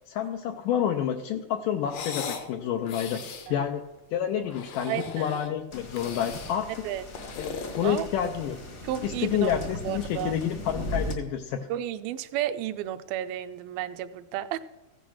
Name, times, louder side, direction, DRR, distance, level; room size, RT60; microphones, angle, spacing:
voice 1, 0.1-3.2 3.5-3.8 4.1-6.9 7.4-8.6 9.0-11.6, left 9 dB, 90° left, 5 dB, 1.9 m, -29 dB
sound 1, 1.8-2.5 2.8-3.5 4.4-5.5 5.9-6.6 7.0-8.5, left 6 dB, 70° left, 1.4 m, -39 dB
voice 2, 4.9-5.4 6.8-7.1 7.8-8.1 8.8-9.5 9.8-10.4 11.7-14.6, right 12 dB, 80° right, 11 dB, 2.2 m, -32 dB
sound 2, 5.7-11.1, left 1 dB, 55° left, 0.9 m, -38 dB
15.0 x 8.3 x 6.3 m, 0.99 s
omnidirectional pair, 4.7 m